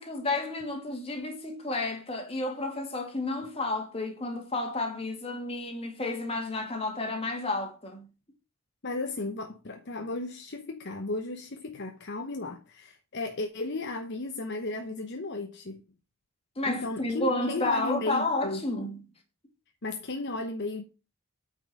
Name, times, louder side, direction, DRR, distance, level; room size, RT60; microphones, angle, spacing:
voice 1, 0.0-8.1 16.6-19.1, left 2 dB, 25° left, 2.2 m, -31 dB
voice 2, 8.8-15.8 16.6-18.6 19.8-20.8, left 2 dB, 50° left, 1.0 m, -34 dB
9.0 x 5.6 x 5.4 m
head